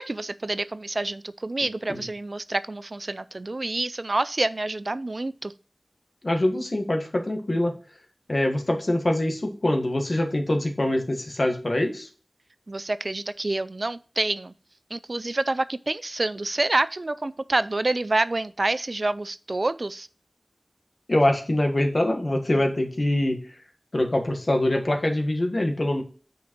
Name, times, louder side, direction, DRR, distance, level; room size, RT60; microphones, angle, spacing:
voice 1, 0.0-5.5 12.7-14.5 14.9-20.1, right 2 dB, 55° right, 0.3 m, -27 dB
voice 2, 6.2-7.7 8.3-12.1 21.1-23.4 23.9-26.0, left 1 dB, 55° left, 1.5 m, -24 dB
6.3 x 5.2 x 4.5 m
wide cardioid pair, 60°, 0 cm